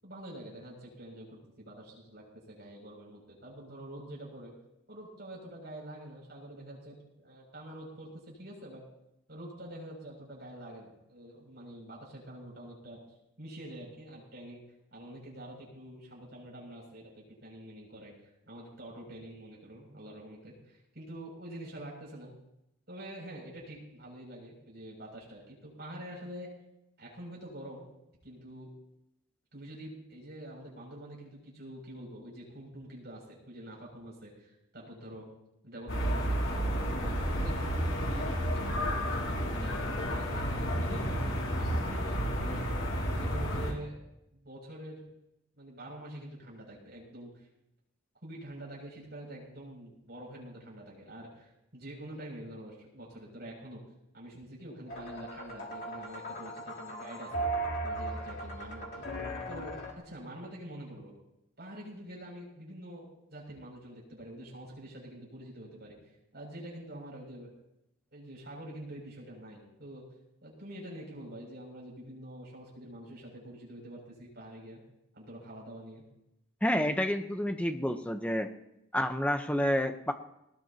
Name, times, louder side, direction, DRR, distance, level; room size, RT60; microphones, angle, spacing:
voice 1, 0.0-4.5 4.9-8.8 9.3-13.0 13.4-14.6 14.9-18.1 18.5-22.3 22.9-26.5 27.0-27.9 28.2-28.7 29.5-35.3 35.6-36.4 36.9-41.2 41.5-42.7 43.0-44.0 44.3-45.0 45.6-47.5 48.2-53.8 54.1-57.5 57.8-59.1 59.5-61.1 61.6-66.0 66.3-67.6 68.1-70.0 70.4-74.8 75.1-76.0, right 1 dB, 50° right, -2 dB, 7.3 m, -46 dB
sound 1, 35.9-43.7, equal, 80° left, 6.2 m, -31 dB
sound 2, 54.9-59.9, right 2 dB, 50° left, 2.8 m, -37 dB
voice 2, 76.6-78.5 78.9-80.1, equal, 5° left, 5 dB, 1.0 m, -29 dB
20.0 x 20.0 x 3.0 m, 0.84 s
head